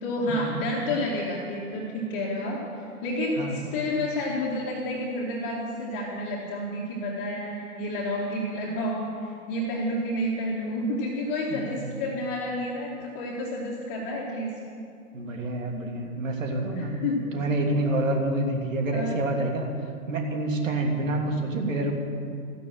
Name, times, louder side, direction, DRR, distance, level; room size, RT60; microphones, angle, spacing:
voice 1, 0.0-14.5 16.7-17.2 18.9-19.2, left 1 dB, 25° left, -5 dB, 2.3 m, -30 dB
voice 2, 3.4-3.7 11.5-11.9 15.1-16.9 17.3-19.7 20.1-21.9, right 2 dB, 60° right, 2 dB, 3.0 m, -27 dB
14.0 x 12.5 x 8.0 m, 2.4 s
figure-of-eight pair, 130°, 45 cm